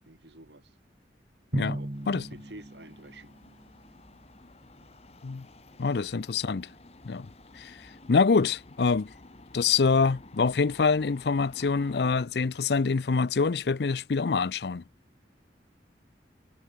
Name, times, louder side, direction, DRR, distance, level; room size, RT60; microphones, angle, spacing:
voice 1, 0.0-0.7 1.5-3.3 6.0-6.3, right 2 dB, 75° right, 3.1 m, -50 dB
Drum, 1.5-3.7, right 1 dB, 30° right, 1.3 m, -36 dB
sound 1, 1.9-12.3, left 2 dB, 35° left, 1.3 m, -52 dB
voice 2, 5.8-6.7 7.0-7.3 7.6-9.1 9.5-14.8, left 4 dB, 65° left, 0.5 m, -25 dB
head